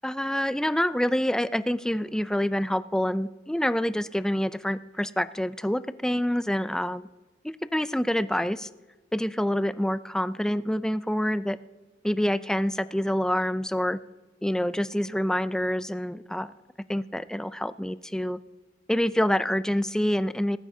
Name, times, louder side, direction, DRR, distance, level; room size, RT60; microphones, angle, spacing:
voice 1, 0.0-7.1 7.7-8.7 9.1-11.6 12.0-14.0 14.4-16.5 16.9-18.4 18.9-20.6, equal, 5° left, 13 dB, 0.3 m, -27 dB
19.5 x 13.0 x 2.7 m, 1.2 s
head